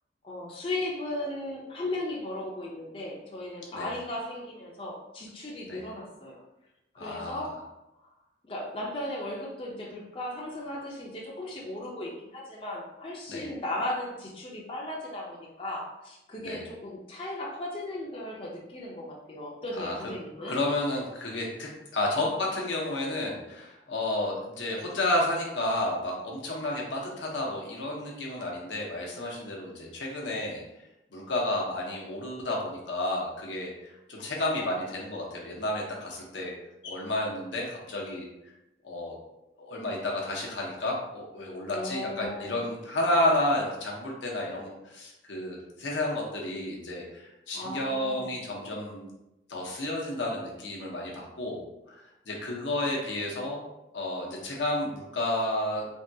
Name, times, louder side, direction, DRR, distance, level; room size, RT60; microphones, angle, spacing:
voice 1, 0.2-6.4 6.9-7.6 8.5-20.6 41.7-42.6 47.5-48.3, left 1 dB, 30° left, -3 dB, 0.4 m, -36 dB
voice 2, 7.0-7.4 13.3-13.5 16.4-16.6 19.7-19.9 20.5-30.6 31.1-36.5 36.8-38.5 38.8-39.2 39.6-49.1 49.5-52.0 52.3-53.6 53.9-55.9, left 1 dB, 85° left, -2 dB, 0.7 m, -31 dB
3.4 x 2.2 x 2.6 m, 0.91 s
head